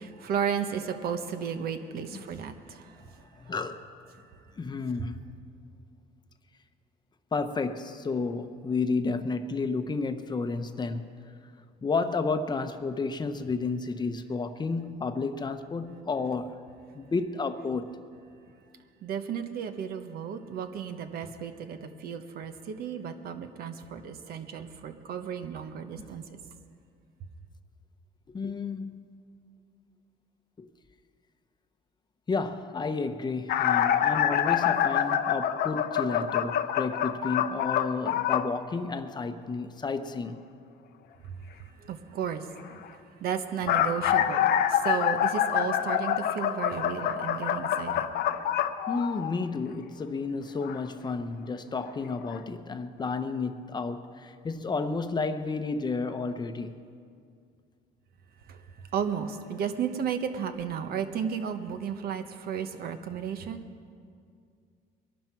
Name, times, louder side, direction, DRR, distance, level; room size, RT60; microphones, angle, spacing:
voice 1, 0.0-3.5 19.0-26.3 41.2-41.4 41.8-42.8 43.2-48.1 58.5-58.6 58.9-63.7, right 7 dB, 65° right, 1.1 m, -34 dB
voice 2, 3.4-3.8 4.6-5.2 7.3-11.1 11.8-16.6 16.9-17.9 28.3-29.1 30.6-30.7 32.3-40.4 48.4-48.5 48.9-56.8, left 4 dB, 25° left, 0.8 m, -31 dB
sound 1, 33.5-38.5 43.4-49.5 50.6-50.8 51.8-51.9 52.3-52.4, left 10 dB, 70° left, 0.7 m, -26 dB
21.5 x 12.0 x 4.6 m
cardioid pair, 110°, 17 cm